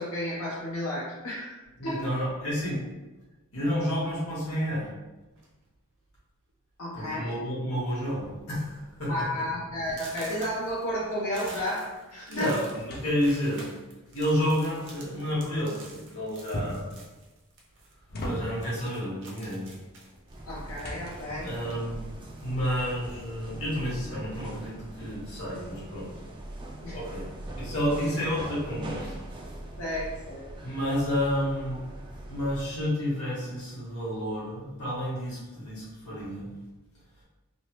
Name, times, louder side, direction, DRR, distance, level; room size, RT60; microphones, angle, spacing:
voice 1, 0.0-1.6 1.8-2.0 6.8-7.4 9.1-11.8 12.1-12.5 20.5-21.5 26.8-27.0 29.8-30.5, left 1 dB, 90° left, -8 dB, 0.7 m, -32 dB
voice 2, 1.8-2.8 3.5-4.9 6.9-9.1 9.4-9.5 12.3-13.6 14.1-17.0 18.2-19.7 21.4-22.0 22.4-26.1 26.9-27.3 27.6-29.2 30.6-31.8 32.3-36.5, equal, 65° left, -7 dB, 1.3 m, -30 dB
sound 1, 5.3-5.7 6.5-6.6 7.0-7.2 7.5-8.0 8.4-8.5 9.0-9.1 9.9-17.9 18.2-21.9 22.3-23.3, right 2 dB, 60° right, 0.7 m, -49 dB
sound 2, 8.1-11.0 11.4-13.7 16.5-17.0 17.6-18.8 20.1-21.5, equal, 45° left, 0.5 m, -40 dB
sound 3, 20.3-32.9, right 1 dB, 20° right, 0.3 m, -41 dB
3.2 x 2.0 x 2.9 m, 1.1 s
head